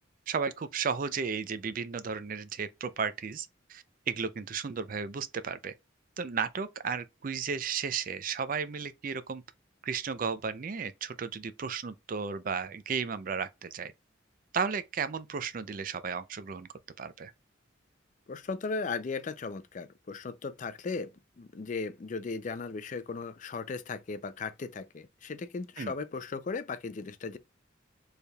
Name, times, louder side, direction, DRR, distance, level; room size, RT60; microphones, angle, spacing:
voice 1, 0.3-5.7 6.2-9.4 9.8-13.9 14.5-16.7 17.0-17.3 25.8-25.9, right 6 dB, 45° right, 0.4 m, -34 dB
voice 2, 18.3-27.4, left 4 dB, 40° left, 0.4 m, -37 dB
4.3 x 3.3 x 2.3 m
head